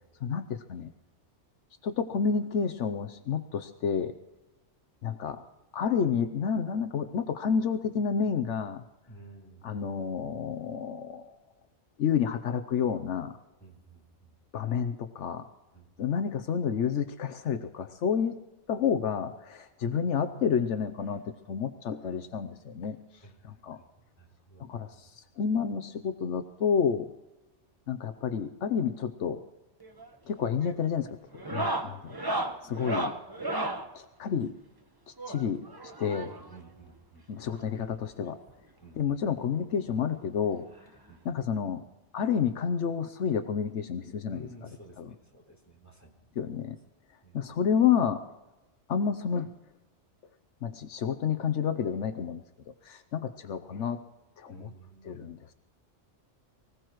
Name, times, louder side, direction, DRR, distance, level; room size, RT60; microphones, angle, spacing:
voice 1, 0.2-0.9 1.8-4.1 5.0-5.4 5.7-8.8 9.6-11.3 12.0-13.3 14.5-15.5 16.0-18.4 18.7-23.0 23.4-23.8 24.6-27.1 27.9-29.4 30.3-31.2 31.5-32.2 32.6-33.1 33.9-34.5 35.3-35.7 36.0-36.3 37.3-38.4 39.0-40.6 41.2-41.8 42.1-44.5 45.0-45.1 46.4-46.8 47.3-48.2 48.9-49.5 50.6-52.4 52.8-54.0 54.4-54.7 55.0-55.4, left 7 dB, 80° left, 9 dB, 1.1 m, -29 dB
voice 2, 9.1-9.9 13.6-14.4 15.7-15.9 19.8-20.5 23.2-23.6 24.2-25.1 36.2-37.8 38.8-39.4 41.1-41.2 41.6-41.7 44.3-46.3 47.2-47.6 54.5-55.2, right 2 dB, 15° left, -2 dB, 3.5 m, -52 dB
sound 1, 29.8-30.1 30.4-30.8 31.3-33.9 35.2-36.6 37.6-37.7 37.9-38.0 38.5-38.6 39.9-40.0 41.3-41.4, right 1 dB, 20° right, 1.1 m, -34 dB
24.5 x 17.0 x 3.1 m, 1.0 s
omnidirectional pair, 1.2 m